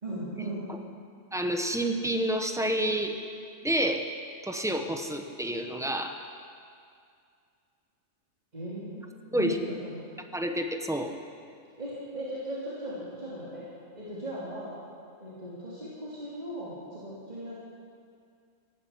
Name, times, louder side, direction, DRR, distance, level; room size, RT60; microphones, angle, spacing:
voice 1, 0.0-0.6 8.5-10.1 11.8-13.7 13.9-14.7 15.2-17.6, right 1 dB, 35° right, -9 dB, 3.1 m, -38 dB
voice 2, 1.3-3.2 3.6-4.1 4.4-6.2 9.3-9.6 10.3-11.1, right 1 dB, 5° right, 5 dB, 0.8 m, -29 dB
16.0 x 11.0 x 7.4 m, 2.3 s
omnidirectional pair, 1.3 m